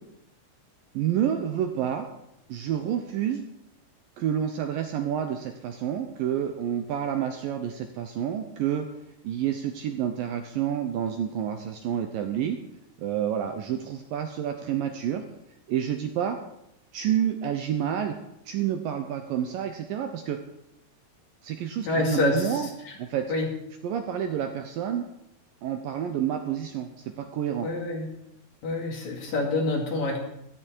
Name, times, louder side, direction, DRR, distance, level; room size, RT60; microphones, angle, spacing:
voice 1, 0.9-2.1 2.5-3.4 4.2-8.9 9.2-12.6 13.0-15.2 15.7-16.4 16.9-18.2 18.5-20.4 21.4-22.7 23.0-23.2 23.8-25.0 25.6-27.7, right 9 dB, 75° right, 6 dB, 2.2 m, -29 dB
voice 2, 21.8-23.0 23.3-23.5 27.6-28.1 28.6-30.2, left 2 dB, 50° left, 0 dB, 3.2 m, -27 dB
14.5 x 12.5 x 4.6 m, 0.82 s
omnidirectional pair, 4.8 m